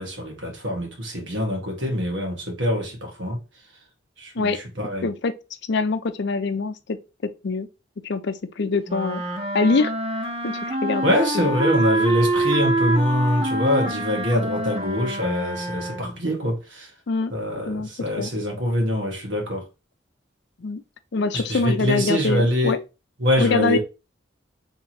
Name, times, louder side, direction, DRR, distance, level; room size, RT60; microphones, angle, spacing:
voice 1, 0.0-3.4 4.2-5.1 11.0-16.9 17.3-19.6 21.3-22.8 23.2-23.8, left 1 dB, 75° right, 1.6 m, -24 dB
voice 2, 5.0-5.3 5.7-7.0 7.2-7.7 8.0-9.2 9.5-9.9 10.4-11.0 11.3-11.5 17.1-17.3 17.7-17.9 18.2-18.3 20.6-20.8 21.1-22.8 23.4-23.8, left 3 dB, 65° left, 0.5 m, -24 dB
sound 1, 8.9-16.2, right 2 dB, 30° right, 0.9 m, -25 dB
3.6 x 3.0 x 4.3 m
head